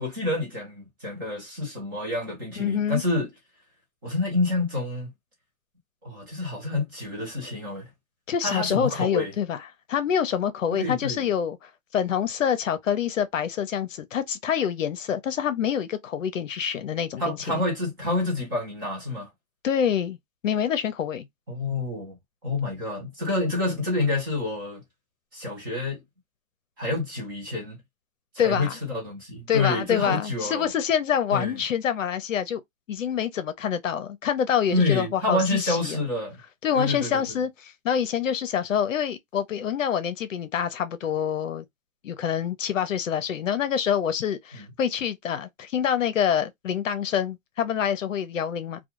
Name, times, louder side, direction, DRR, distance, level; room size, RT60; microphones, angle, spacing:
voice 1, 0.0-3.3 4.0-5.1 6.0-7.9 8.4-9.3 10.7-11.2 17.2-19.3 21.5-22.2 22.4-24.8 25.3-26.0 26.8-27.8 28.3-30.7 31.3-31.6 34.7-36.4 36.7-37.2 44.5-44.6, left 2 dB, 15° right, 0.6 m, -28 dB
voice 2, 2.6-3.0 8.3-9.6 9.9-17.6 19.6-20.2 20.4-21.3 28.4-28.8 29.5-32.6 32.9-36.0 36.6-41.7 42.0-48.8, left 8 dB, 70° left, 0.7 m, -26 dB
2.3 x 2.2 x 2.9 m
hypercardioid pair, 170°, 41 cm